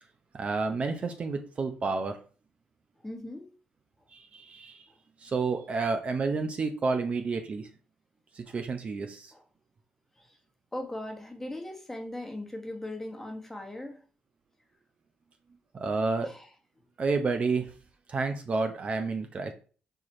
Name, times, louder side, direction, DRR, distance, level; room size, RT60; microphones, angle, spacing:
voice 1, 0.3-2.2 4.1-4.8 5.2-7.7 8.4-9.3 15.7-16.3 17.0-17.7 18.1-19.5, right 4 dB, 40° right, 6 dB, 0.7 m, -30 dB
voice 2, 3.0-3.5 8.5-8.6 9.3-9.4 10.2-10.4 10.7-14.0 16.2-16.5, left 1 dB, 10° left, 3 dB, 1.2 m, -39 dB
4.8 x 4.6 x 4.3 m, 0.39 s
cardioid pair, 110°, 3 cm